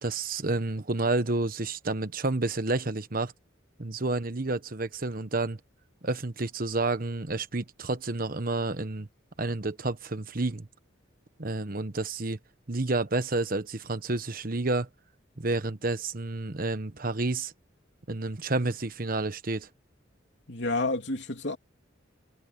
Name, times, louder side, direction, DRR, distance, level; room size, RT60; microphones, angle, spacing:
voice 1, 0.0-3.3 3.8-5.6 6.0-9.1 9.4-10.7 11.4-12.4 12.7-14.9 15.4-17.5 18.1-19.7, right 2 dB, 50° right, 1.2 m, -30 dB
voice 2, 20.5-21.6, left 2 dB, 65° left, 3.4 m, -29 dB
head